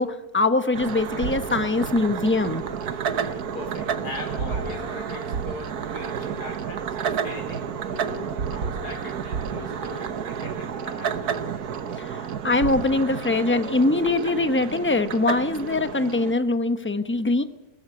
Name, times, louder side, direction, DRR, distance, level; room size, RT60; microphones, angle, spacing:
voice 1, 0.0-2.6 12.0-12.2 12.4-17.4, left 2 dB, 10° left, 9 dB, 0.8 m, -23 dB
sound 1, 0.7-16.3, right 7 dB, 75° right, 1.6 m, -30 dB
voice 2, 2.8-11.3, left 2 dB, 80° left, 1 dB, 4.6 m, -39 dB
20.0 x 14.0 x 9.6 m, 1.1 s
omnidirectional pair, 1.7 m